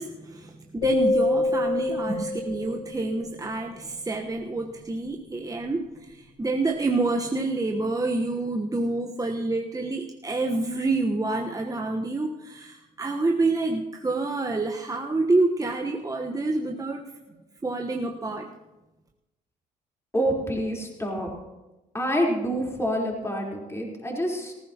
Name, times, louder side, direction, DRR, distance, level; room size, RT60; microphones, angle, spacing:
voice 1, 0.0-17.0 17.6-18.5, right 2 dB, 20° right, 2 dB, 1.2 m, -27 dB
sound 1, 0.8-3.1, left 2 dB, 80° left, 2.9 m, -26 dB
voice 2, 20.1-21.3 21.9-24.5, equal, 15° left, -1 dB, 4.0 m, -27 dB
18.5 x 15.5 x 3.0 m, 1.0 s
hypercardioid pair, 60°, 20 cm